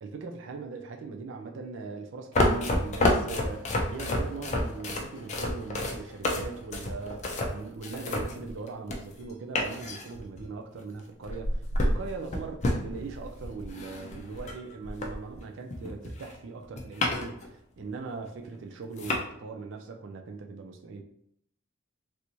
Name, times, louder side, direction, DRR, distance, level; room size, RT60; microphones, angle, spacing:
voice 1, 0.0-21.0, right 4 dB, 60° right, 4 dB, 0.4 m, -40 dB
sound 1, 2.3-9.2 9.5-10.5 11.2-15.4 15.7-17.5 17.8-17.9 18.5-18.6 19.0-19.2, left 1 dB, 35° left, 0.4 m, -30 dB
3.3 x 2.6 x 3.0 m, 0.74 s
head